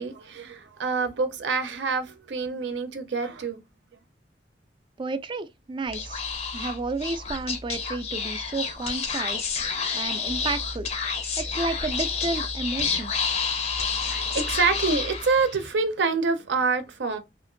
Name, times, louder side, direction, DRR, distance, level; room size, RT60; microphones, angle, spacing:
voice 1, 0.0-3.6 14.1-17.2, right 4 dB, 75° right, 0.5 m, -26 dB
voice 2, 5.0-6.2 6.5-9.5 9.9-10.9 11.4-13.1, right 3 dB, 30° right, 0.3 m, -31 dB
Speech / Whispering, 5.9-15.7, left 5 dB, 35° left, 0.5 m, -29 dB
2.8 x 2.5 x 2.5 m
head